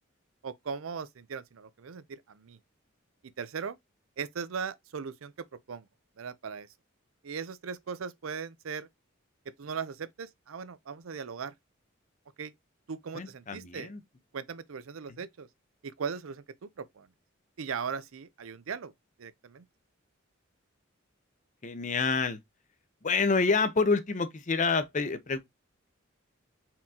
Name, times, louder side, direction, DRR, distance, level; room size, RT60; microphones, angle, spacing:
voice 1, 0.4-2.6 3.4-3.8 4.2-5.9 6.2-6.7 7.2-8.9 9.6-11.5 12.4-12.5 12.9-13.9 14.3-15.5 15.8-17.1 17.6-18.9 19.2-19.6, right 6 dB, 90° right, 0.5 m, -38 dB
voice 2, 13.1-14.0 21.6-22.4 23.0-25.4, left 4 dB, 40° left, 0.6 m, -27 dB
4.4 x 3.7 x 2.8 m
head